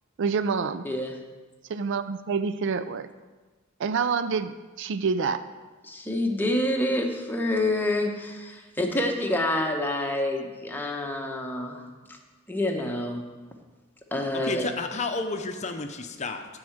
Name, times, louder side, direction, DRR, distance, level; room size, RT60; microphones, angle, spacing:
voice 1, 0.2-0.8 1.7-3.1 3.8-5.4, right 5 dB, 65° right, 12 dB, 0.4 m, -27 dB
voice 2, 0.8-1.1 5.9-11.8 12.1-12.2 12.5-13.2 14.1-14.7, left 1 dB, 10° left, 1 dB, 1.0 m, -27 dB
voice 3, 14.3-16.5, left 3 dB, 35° left, 6 dB, 0.7 m, -31 dB
9.6 x 4.8 x 7.2 m, 1.3 s
head